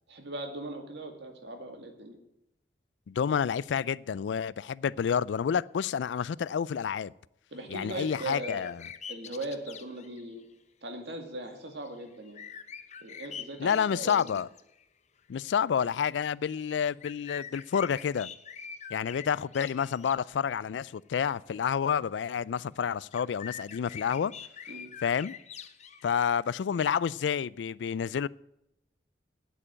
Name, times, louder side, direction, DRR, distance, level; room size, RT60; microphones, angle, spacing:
voice 1, 0.1-2.2 7.5-8.6 9.1-10.4 10.8-12.4 13.0-14.3 24.7-24.9, right 2 dB, 70° right, 2.3 m, -39 dB
voice 2, 3.1-7.1 7.7-8.7 13.6-14.5 15.3-18.3 18.9-24.3 25.0-25.4 26.0-28.3, left 7 dB, 85° left, 0.3 m, -29 dB
sound 1, 7.6-7.7 8.1-10.4 11.8-14.8 15.2-15.3 16.5-20.4 21.2-21.3 23.1-26.0, left 7 dB, 40° left, 0.8 m, -45 dB
9.1 x 8.5 x 8.8 m
head